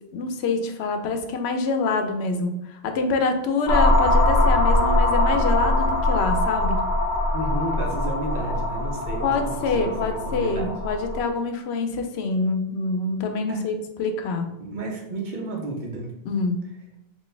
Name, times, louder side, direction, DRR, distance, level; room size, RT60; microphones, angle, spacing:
voice 1, 0.1-6.8 9.2-14.5 16.3-16.6, left 4 dB, 90° left, 6 dB, 0.8 m, -26 dB
sound 1, 3.7-11.3, left 1 dB, 55° left, 0.7 m, -22 dB
voice 2, 7.3-9.9 10.3-10.7 13.5-13.7 14.6-16.1, right 2 dB, 50° right, -1 dB, 0.9 m, -32 dB
4.4 x 2.5 x 3.3 m, 0.91 s
omnidirectional pair, 1.0 m